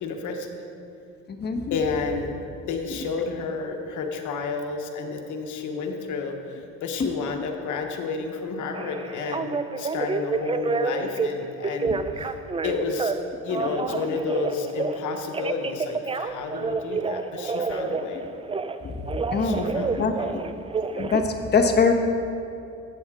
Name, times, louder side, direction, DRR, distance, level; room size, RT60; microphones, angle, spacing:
voice 1, 0.0-0.6 1.7-12.3 12.6-13.2 13.4-18.3 19.4-20.5, left 4 dB, 75° left, 3 dB, 1.2 m, -31 dB
voice 2, 1.3-1.8 7.0-7.1 19.3-20.1 20.9-21.9, left 5 dB, 35° left, 3 dB, 1.0 m, -23 dB
Telephone, 8.7-11.3 11.6-13.1 13.5-15.0 15.3-18.8 19.1-21.2, right 4 dB, 20° right, 0.4 m, -28 dB
12.5 x 8.0 x 3.8 m, 2.6 s
cardioid pair, 90°, 30 cm